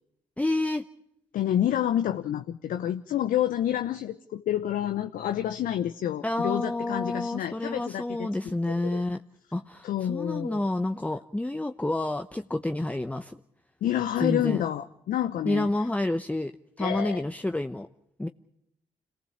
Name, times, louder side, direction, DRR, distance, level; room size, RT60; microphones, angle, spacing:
voice 1, 0.4-0.8 6.2-9.2 9.5-13.4 14.2-14.6 15.4-16.5 16.8-17.9 18.2-18.3, left 1 dB, 10° left, 7 dB, 0.9 m, -29 dB
voice 2, 1.3-8.3 8.7-9.0 9.8-10.7 13.8-15.7 16.8-17.2, left 11 dB, 70° left, 8 dB, 0.8 m, -28 dB
27.0 x 18.0 x 7.3 m, 0.77 s
hypercardioid pair, 45°, 15 cm